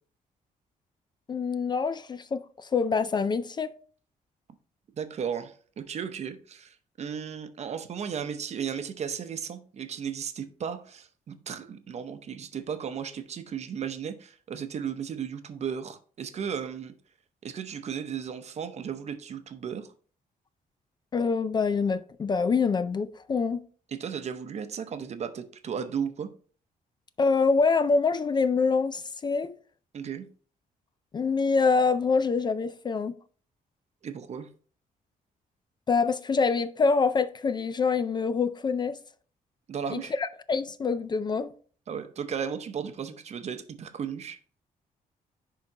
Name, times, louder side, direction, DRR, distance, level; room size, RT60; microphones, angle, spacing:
voice 1, 1.3-3.7 21.1-23.6 27.2-29.5 31.1-33.1 35.9-39.0 39.9-41.5, left 4 dB, 30° left, 0.3 m, -25 dB
voice 2, 5.0-16.9 17.4-19.9 23.9-26.3 29.9-30.3 34.0-34.5 39.7-40.1 41.9-44.4, right 7 dB, 50° right, 0.7 m, -35 dB
10.5 x 3.7 x 2.8 m
cardioid pair, 135°, 15 cm